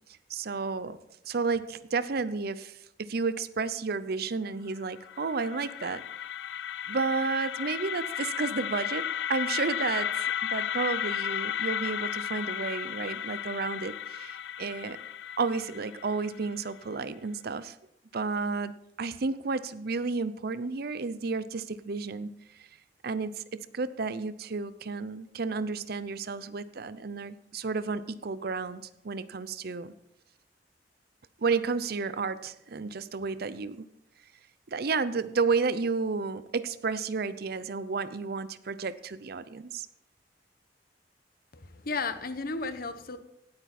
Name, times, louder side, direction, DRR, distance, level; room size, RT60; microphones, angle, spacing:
voice 1, 0.3-1.0 1.3-6.0 6.9-15.0 15.4-17.8 18.1-22.3 23.0-29.9 31.4-33.8 34.7-39.9, right 4 dB, 60° right, 15 dB, 0.6 m, -32 dB
sound 1, 4.8-16.8, left 10 dB, 75° left, 0.4 m, -34 dB
voice 2, 41.5-43.2, left 3 dB, 55° left, 10 dB, 1.0 m, -34 dB
17.5 x 8.8 x 4.3 m, 0.84 s
head